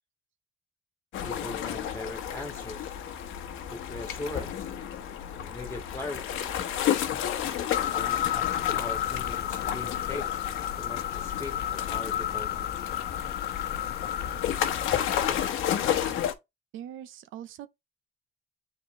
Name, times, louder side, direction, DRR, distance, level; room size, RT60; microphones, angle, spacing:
sound 1, 1.1-16.3, left 10 dB, 85° left, 1.1 m, -32 dB
voice 1, 1.2-3.0 3.7-4.8 5.3-6.4 7.8-10.3 10.7-12.8, left 2 dB, 15° left, 1.5 m, -40 dB
sound 2, 7.7-15.5, left 12 dB, 55° left, 0.4 m, -32 dB
voice 2, 16.7-17.7, right 10 dB, 85° right, 0.6 m, -41 dB
8.2 x 4.2 x 3.0 m
cardioid pair, 90°, 20 cm